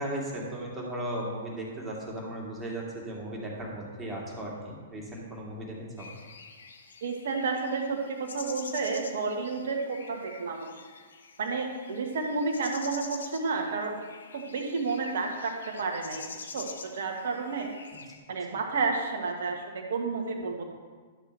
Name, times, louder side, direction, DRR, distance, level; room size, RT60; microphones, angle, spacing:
voice 1, 0.0-6.1, right 1 dB, 15° right, -4 dB, 2.4 m, -36 dB
sound 1, 6.0-18.2, left 5 dB, 70° left, 0.8 m, -46 dB
voice 2, 7.0-10.7 11.4-14.0 14.3-16.2 16.5-17.7 18.3-20.6, right 4 dB, 60° right, 3 dB, 1.4 m, -31 dB
11.5 x 6.6 x 3.3 m, 1.5 s
figure-of-eight pair, 110°, 0 cm